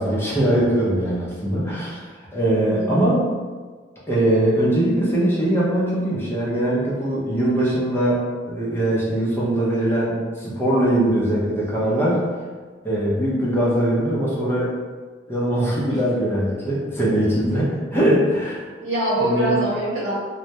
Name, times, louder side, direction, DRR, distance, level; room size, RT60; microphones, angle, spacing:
voice 1, 0.0-3.2 4.1-12.3 12.8-14.7 15.3-18.6 19.2-19.5, right 1 dB, 15° left, -7 dB, 0.5 m, -21 dB
voice 2, 2.6-3.0 18.8-20.1, right 1 dB, 80° right, -7 dB, 0.9 m, -24 dB
2.1 x 2.1 x 2.7 m, 1.4 s
head